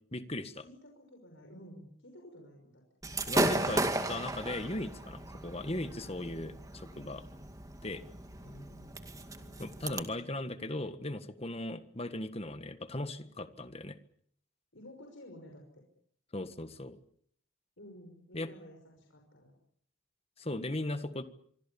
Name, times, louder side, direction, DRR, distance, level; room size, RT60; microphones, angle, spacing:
voice 1, 0.1-0.6 3.3-7.2 7.8-8.0 9.6-14.0 16.3-17.0 18.3-18.5 20.4-21.2, left 1 dB, 30° left, 10 dB, 1.6 m, -38 dB
voice 2, 0.6-2.8 8.4-9.7 14.7-15.8 17.8-19.5, equal, 65° left, 1 dB, 5.9 m, -53 dB
Gunshot gunfire / Fireworks, 3.0-10.0, right 2 dB, 15° right, 2.1 m, -35 dB
26.0 x 24.5 x 7.1 m, 0.66 s
head